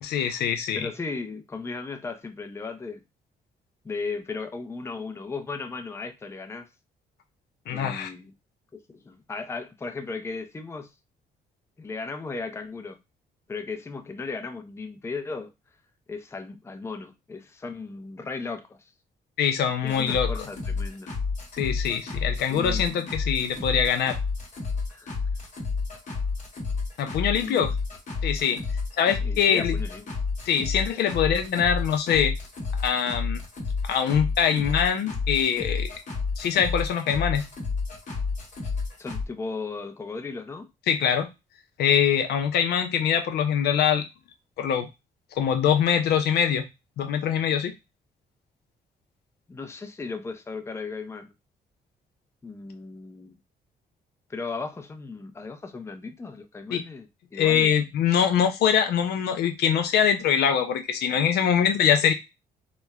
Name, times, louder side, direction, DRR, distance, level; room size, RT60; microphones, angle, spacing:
voice 1, 0.0-0.8 7.7-8.1 19.4-20.5 21.6-24.2 27.0-27.7 28.2-28.6 28.9-29.8 30.5-32.3 32.8-33.4 33.8-35.9 36.4-37.4 40.9-41.3 41.8-44.0 44.6-44.9 45.4-46.6 47.0-47.7 56.7-56.8 57.4-62.1, left 8 dB, 80° left, 0.5 m, -23 dB
voice 2, 0.7-3.0 3.8-6.7 7.7-8.3 8.7-10.9 11.8-13.0 13.5-15.5 16.1-18.9 19.8-21.1 22.5-22.9 24.9-25.2 27.3-27.7 29.2-30.1 39.0-40.7 49.5-51.3 52.4-53.4 54.3-57.8, left 4 dB, 15° left, 0.4 m, -36 dB
sound 1, 19.9-39.2, left 4 dB, 45° left, 0.9 m, -30 dB
2.9 x 2.1 x 2.2 m
cardioid pair, 95°, 17 cm